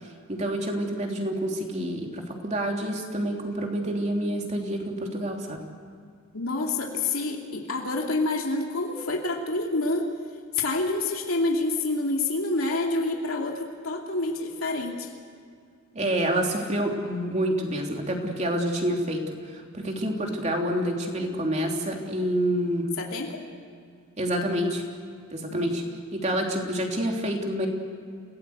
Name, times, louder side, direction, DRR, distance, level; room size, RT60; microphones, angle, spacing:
voice 1, 0.3-5.6 15.9-22.9 24.2-24.8 25.3-25.8 26.1-27.7, right 1 dB, 35° right, 1 dB, 3.1 m, -28 dB
voice 2, 6.3-10.1 10.5-15.1 23.0-23.4 25.5-25.6, left 2 dB, 90° left, 0 dB, 2.8 m, -27 dB
29.0 x 18.0 x 8.1 m, 2.3 s
head